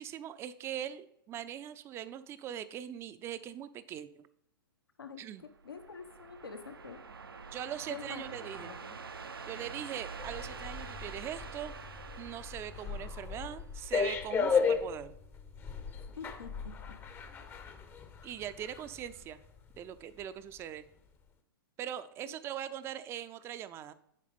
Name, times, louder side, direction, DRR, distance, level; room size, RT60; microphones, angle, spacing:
voice 1, 0.0-4.3 5.2-5.4 7.5-8.7 9.5-11.7 12.2-15.1 18.2-19.4 19.8-20.9 21.8-23.9, right 10 dB, 20° right, 13 dB, 0.5 m, -41 dB
voice 2, 5.0-7.0 7.9-9.0 16.2-17.0 22.2-22.4, left 6 dB, 75° left, 8 dB, 1.0 m, -47 dB
sound 1, 5.4-13.9, right 5 dB, 80° right, 0.7 m, -46 dB
sound 2, 10.2-19.2 19.6-19.8, left 5 dB, 20° left, 0.7 m, -35 dB
10.5 x 4.9 x 3.5 m, 0.74 s
figure-of-eight pair, 110°, 12 cm